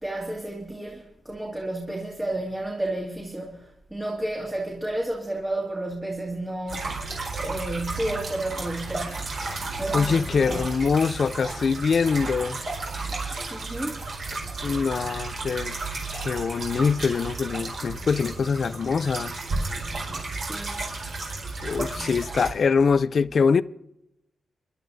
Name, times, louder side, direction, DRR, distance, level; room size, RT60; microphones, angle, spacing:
voice 1, 0.0-6.9 7.4-9.3 9.8-10.7 13.2-13.3 13.5-14.0 20.3-20.8 21.7-21.8, right 1 dB, 15° right, 2.3 m, -32 dB
sound 1, 6.7-22.5, right 3 dB, 55° right, 4.6 m, -33 dB
voice 2, 9.9-12.6 14.6-15.8 16.1-19.3 21.6-23.6, left 5 dB, 55° left, 0.4 m, -24 dB
29.5 x 11.5 x 2.7 m
cardioid pair, 95°, 0 cm